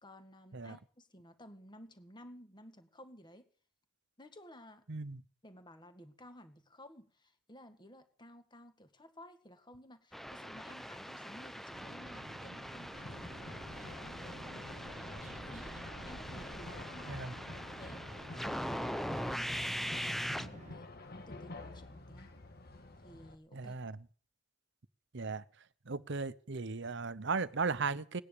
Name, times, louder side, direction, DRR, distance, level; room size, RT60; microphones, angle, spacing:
voice 1, 0.0-3.5 4.2-4.8 5.4-15.8 16.1-22.3 23.0-23.8, left 1 dB, 25° left, 1.9 m, -55 dB
voice 2, 4.9-5.2 17.1-17.3 23.5-24.0 25.1-25.4 25.9-28.2, right 4 dB, 65° right, 0.9 m, -36 dB
sound 1, 10.1-20.5, equal, ahead, 0.8 m, -41 dB
sound 2, 11.7-20.8, right 2 dB, 35° right, 0.7 m, -52 dB
sound 3, 12.9-23.3, left 2 dB, 50° left, 1.8 m, -49 dB
18.5 x 10.0 x 6.8 m
head